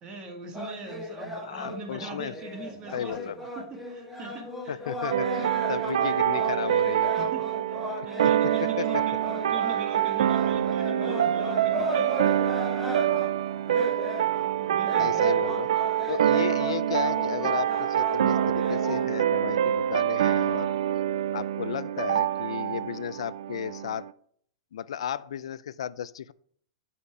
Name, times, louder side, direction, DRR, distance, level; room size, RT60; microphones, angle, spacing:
voice 1, 0.0-4.8 5.4-5.5 7.2-12.3 14.4-15.5, right 3 dB, 30° right, 3 dB, 1.8 m, -42 dB
sound 1, 0.5-19.1, left 1 dB, ahead, 1.3 m, -36 dB
voice 2, 1.5-2.3 2.9-3.4 4.7-5.4 5.7-7.3 8.0-8.1 8.8-9.0 15.0-15.7 16.1-20.8 21.3-24.1 24.7-26.3, left 9 dB, 85° left, 19 dB, 0.4 m, -34 dB
sound 2, 5.1-24.1, right 11 dB, 85° right, 0.3 m, -26 dB
10.5 x 4.3 x 4.8 m, 0.62 s
hypercardioid pair, 140°, 3 cm